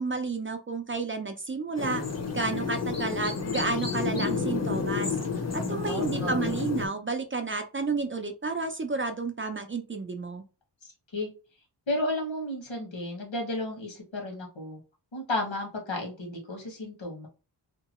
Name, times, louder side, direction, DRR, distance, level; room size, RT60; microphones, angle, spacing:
voice 1, 0.0-2.0 2.3-5.2 5.5-10.4, right 3 dB, 30° right, 5 dB, 0.4 m, -31 dB
sound 1, 1.8-6.9, left 5 dB, 35° left, 0.6 m, -30 dB
voice 2, 5.7-6.5 10.8-11.3 11.9-14.8 15.1-17.3, left 2 dB, 85° left, 0 dB, 1.3 m, -33 dB
2.9 x 2.2 x 2.9 m, 0.32 s
wide cardioid pair, 100°, 45 cm